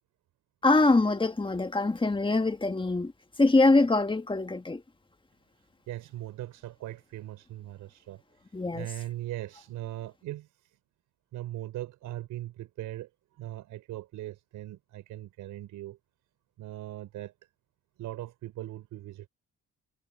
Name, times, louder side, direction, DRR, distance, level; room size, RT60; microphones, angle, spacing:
voice 1, 0.6-3.1 3.4-4.8 8.5-8.9, left 2 dB, 15° left, 1.7 m, -23 dB
voice 2, 5.9-8.2 8.7-10.5 11.3-16.0 16.6-17.3 18.0-19.3, right 14 dB, 90° right, 5.0 m, -39 dB
cardioid pair, 90°, 30 cm